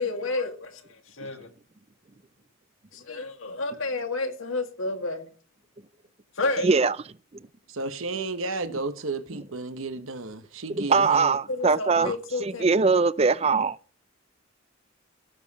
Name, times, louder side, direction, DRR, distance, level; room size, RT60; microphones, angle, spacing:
voice 1, 0.0-1.5 2.9-5.3 6.4-6.7 11.5-12.6, left 3 dB, 75° left, 2.1 m, -30 dB
voice 2, 6.6-7.0 10.7-12.1 12.4-13.8, right 4 dB, 30° right, 0.5 m, -22 dB
voice 3, 7.7-11.4 12.0-12.1, right 3 dB, 80° right, 1.1 m, -32 dB
17.5 x 7.4 x 4.1 m
head